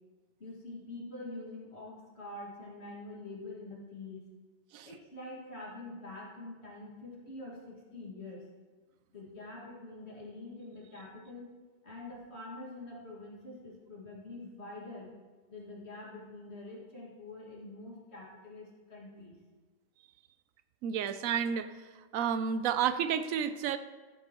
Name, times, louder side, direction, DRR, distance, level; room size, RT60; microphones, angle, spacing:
voice 1, 0.4-4.3 4.8-8.5 9.1-11.5 11.8-15.1 15.5-19.4, left 2 dB, 50° left, -4 dB, 2.3 m, -45 dB
voice 2, 20.8-21.7 22.1-23.8, right 8 dB, 80° right, 11 dB, 1.0 m, -30 dB
15.0 x 7.7 x 3.0 m, 1.3 s
omnidirectional pair, 1.4 m